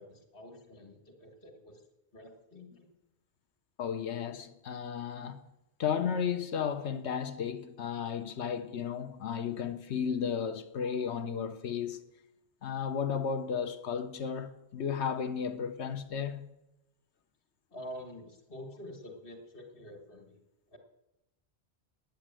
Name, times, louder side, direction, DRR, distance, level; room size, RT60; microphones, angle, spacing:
voice 1, 0.0-1.8 2.1-2.9 17.7-20.4 20.7-20.8, equal, 55° left, 2.0 m, -47 dB
voice 2, 3.8-5.4 5.8-12.0 12.6-16.4, left 7 dB, 85° left, 1.2 m, -34 dB
10.5 x 9.0 x 7.5 m
omnidirectional pair, 1.1 m